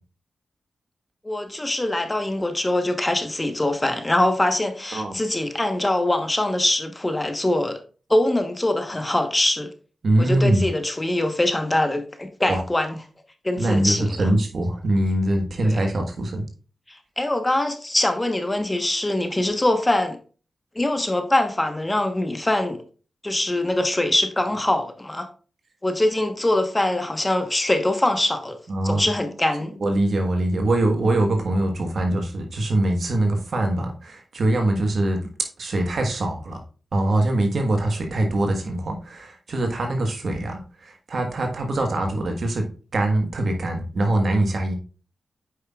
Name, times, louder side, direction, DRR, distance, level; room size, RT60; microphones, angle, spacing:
voice 1, 1.2-7.8 8.1-9.7 10.2-13.0 13.4-14.3 15.6-15.8 16.9-20.2 20.7-22.8 23.2-25.3 25.8-28.6 28.8-29.7, left 1 dB, 20° left, 7 dB, 1.1 m, -23 dB
voice 2, 10.0-10.6 12.5-12.6 13.6-16.4 28.7-29.0 29.8-35.2 35.6-36.6 36.9-42.7 42.9-44.7, right 1 dB, 65° right, 4 dB, 1.4 m, -23 dB
8.1 x 5.5 x 2.4 m, 0.38 s
cardioid pair, 45°, 0 cm